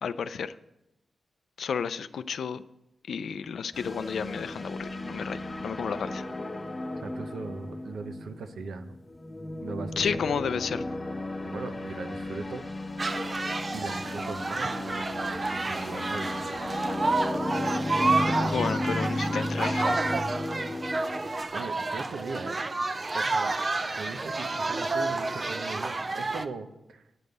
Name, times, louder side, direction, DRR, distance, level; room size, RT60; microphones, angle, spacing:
voice 1, 0.0-0.5 1.6-2.6 3.1-6.3 10.0-10.8 18.4-20.0, left 6 dB, 75° left, 13 dB, 0.4 m, -32 dB
sound 1, 3.7-21.4, left 1 dB, 20° left, 0.9 m, -34 dB
voice 2, 6.9-9.0 9.6-10.3 11.4-12.6 13.7-16.5 18.0-18.5 21.5-22.6 23.1-23.5 23.9-27.0, right 4 dB, 85° right, 8 dB, 0.8 m, -39 dB
sound 2, 13.0-26.5, right 3 dB, 30° right, 0.5 m, -30 dB
9.9 x 5.3 x 7.8 m, 0.90 s
wide cardioid pair, 150°, 0 cm